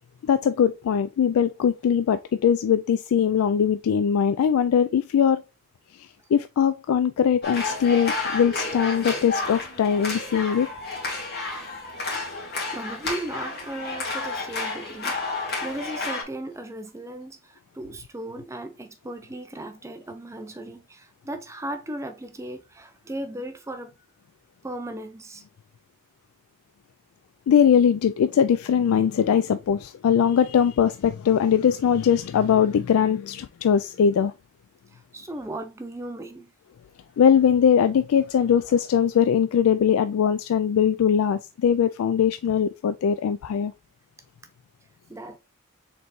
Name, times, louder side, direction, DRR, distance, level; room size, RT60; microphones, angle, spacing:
voice 1, 0.2-5.4 6.0-10.7 27.5-34.3 37.2-43.7, left 8 dB, 85° left, 0.3 m, -21 dB
sound 1, 7.4-16.2, left 3 dB, 50° left, 2.0 m, -31 dB
voice 2, 12.7-23.9 24.6-25.4 34.9-36.5 45.1-45.4, right 1 dB, 15° right, 0.4 m, -36 dB
4.3 x 4.0 x 3.1 m
head